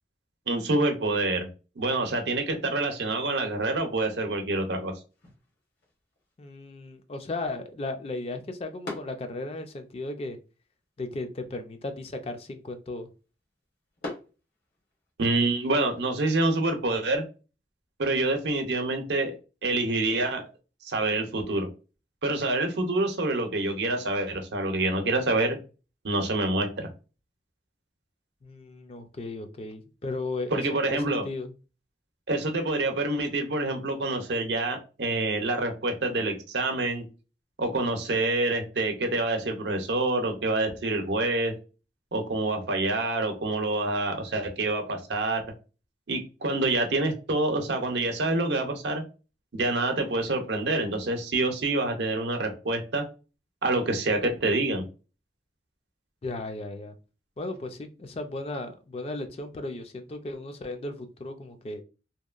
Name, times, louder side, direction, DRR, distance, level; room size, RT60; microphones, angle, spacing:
voice 1, 0.5-1.5 1.8-4.9 15.2-17.2 18.0-19.3 19.6-20.4 20.8-21.7 22.2-25.6 26.0-26.9 30.5-31.2 32.3-37.0 37.6-41.5 42.1-45.4 46.1-49.0 49.5-53.0 53.6-54.8, right 2 dB, 85° right, 5 dB, 0.6 m, -27 dB
sound 1, 5.1-15.1, left 2 dB, 75° left, 1.0 m, -47 dB
voice 2, 6.4-10.4 11.0-13.1 28.4-31.5 56.2-56.9 57.4-61.8, left 2 dB, 35° left, 6 dB, 0.3 m, -35 dB
2.8 x 2.2 x 2.3 m, 0.33 s
head